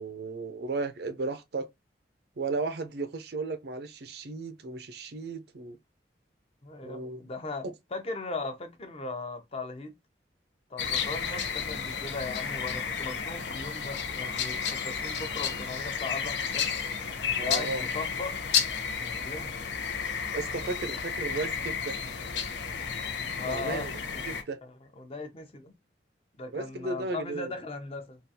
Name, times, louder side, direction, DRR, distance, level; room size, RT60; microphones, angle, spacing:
voice 1, 0.0-1.7 2.4-5.8 6.8-7.2 17.4-17.9 20.3-22.0 23.5-23.9 24.3-24.6 26.5-27.5, right 3 dB, 65° right, 0.5 m, -35 dB
voice 2, 6.6-7.6 7.9-9.9 10.7-16.7 17.4-18.3 19.0-19.6 23.3-23.9 24.1-24.2 24.7-25.7 26.4-28.2, left 3 dB, 35° left, 0.7 m, -38 dB
sound 1, 10.8-24.4, left 6 dB, 85° left, 0.7 m, -32 dB
3.7 x 2.3 x 2.7 m
head